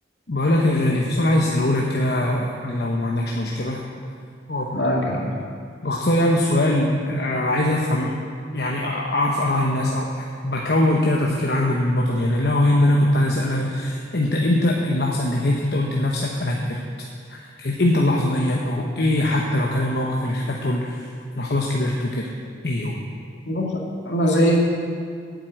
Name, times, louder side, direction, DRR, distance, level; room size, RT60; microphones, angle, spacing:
voice 1, 0.3-3.8 4.5-4.7 5.8-8.1 8.5-16.8 17.6-21.0 21.4-22.2 22.6-23.0, left 1 dB, 55° left, -2 dB, 1.0 m, -22 dB
voice 2, 4.7-5.3 23.5-24.6, equal, 70° left, -1 dB, 2.2 m, -21 dB
9.1 x 7.9 x 9.0 m, 2.2 s
head